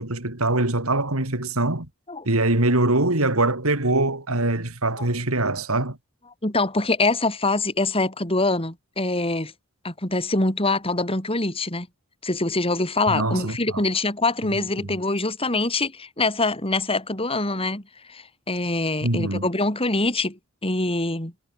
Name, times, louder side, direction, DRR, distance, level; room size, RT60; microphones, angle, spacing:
voice 1, 0.0-1.9 2.2-6.0 13.1-13.8 14.4-14.9 19.0-19.5, right 2 dB, 80° right, 3.9 m, -23 dB
voice 2, 6.4-9.5 9.8-11.9 12.2-17.8 18.1-21.3, left 2 dB, 25° left, 5.2 m, -24 dB
head